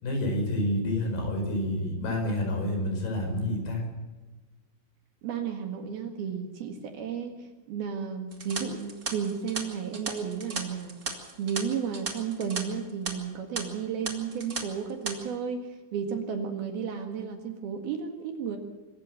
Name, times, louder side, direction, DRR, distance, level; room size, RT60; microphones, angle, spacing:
voice 1, 0.0-3.9, left 1 dB, 60° left, 4 dB, 6.8 m, -28 dB
voice 2, 5.2-11.0 11.4-18.6, right 7 dB, 60° right, 5 dB, 3.4 m, -33 dB
sound 1, 8.3-12.6 12.9-13.1 13.5-13.6 14.0-14.6 14.9-15.1, right 4 dB, 30° right, 1.9 m, -35 dB
24.5 x 14.0 x 7.6 m, 1.3 s
omnidirectional pair, 5.3 m